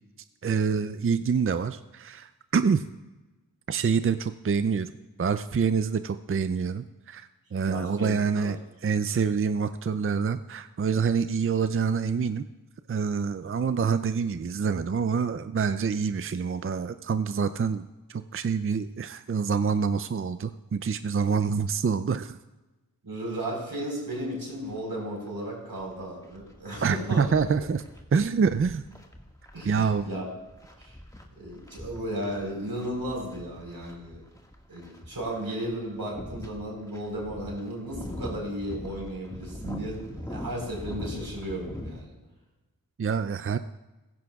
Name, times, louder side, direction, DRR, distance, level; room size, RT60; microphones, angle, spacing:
voice 1, 0.4-2.8 3.7-4.9 5.2-8.6 8.8-12.5 12.9-17.8 18.1-22.4 26.8-27.8 28.1-28.8 29.6-30.1 43.0-43.6, right 6 dB, 40° right, 11 dB, 0.5 m, -26 dB
voice 2, 7.7-8.5 23.0-27.3 29.5-30.3 30.8-31.0 31.4-34.2 34.7-42.1, right 1 dB, 80° right, -2 dB, 4.5 m, -34 dB
sound 1, 24.1-24.2 24.7-24.8 25.2-42.0, left 1 dB, 10° left, 1.8 m, -42 dB
15.5 x 15.5 x 2.4 m, 1.1 s
wide cardioid pair, 40°, 36 cm